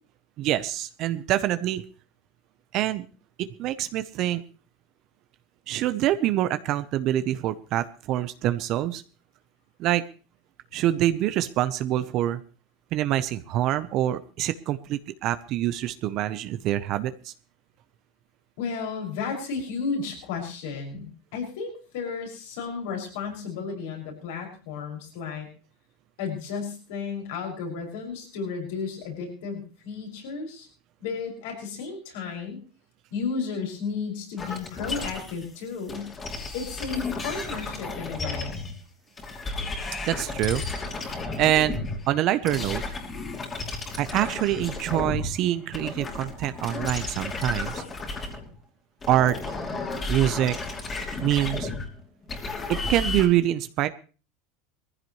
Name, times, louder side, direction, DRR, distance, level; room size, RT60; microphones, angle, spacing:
voice 1, 0.4-1.8 2.7-3.1 3.4-4.4 5.7-9.0 9.8-10.0 10.7-12.4 12.9-17.3 40.0-40.6 41.4-41.8 42.1-42.8 44.0-47.8 49.1-49.4 50.1-50.6 51.2-51.7 52.8-53.9, right 13 dB, 50° right, 11 dB, 0.9 m, -25 dB
voice 2, 18.6-25.5 26.2-30.7 31.0-32.6 33.1-36.1 36.5-38.6, left 5 dB, 75° left, 1 dB, 6.2 m, -33 dB
sound 1, 34.4-35.5 35.9-38.8 39.2-45.4 45.6-48.6 49.0-53.3, left 3 dB, 25° left, 2.8 m, -33 dB
19.5 x 15.0 x 3.2 m, 0.36 s
supercardioid pair, 120°, 0 cm